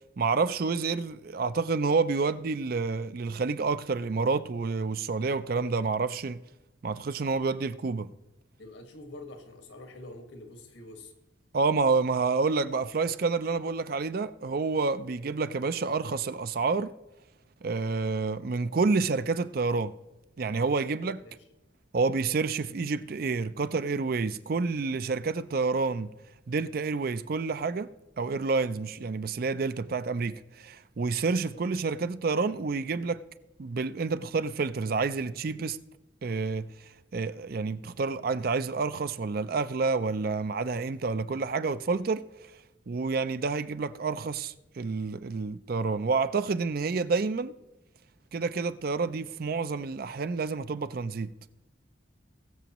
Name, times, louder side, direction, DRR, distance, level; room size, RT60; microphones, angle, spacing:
voice 1, 0.2-6.4 6.8-8.1 11.5-16.9 17.6-19.9 20.4-21.2 21.9-26.1 26.5-27.9 28.2-33.2 33.6-35.8 36.2-36.7 37.1-42.5 42.9-47.5 48.3-51.3, right 4 dB, 50° right, 0.4 m, -29 dB
voice 2, 8.6-11.1 21.2-21.3 31.5-31.6, left 2 dB, 80° left, 1.6 m, -46 dB
20.5 x 7.0 x 3.0 m
head